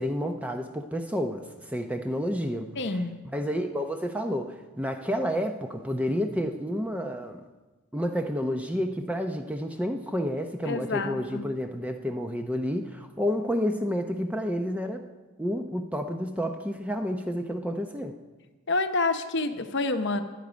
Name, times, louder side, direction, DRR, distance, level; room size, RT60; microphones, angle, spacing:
voice 1, 0.0-3.0 3.2-7.4 7.9-15.1 15.4-18.2, equal, 5° right, 5 dB, 0.7 m, -30 dB
voice 2, 2.8-3.1 10.7-11.4 18.7-20.2, left 3 dB, 50° left, 8 dB, 0.9 m, -28 dB
23.0 x 8.5 x 5.2 m, 1.2 s
head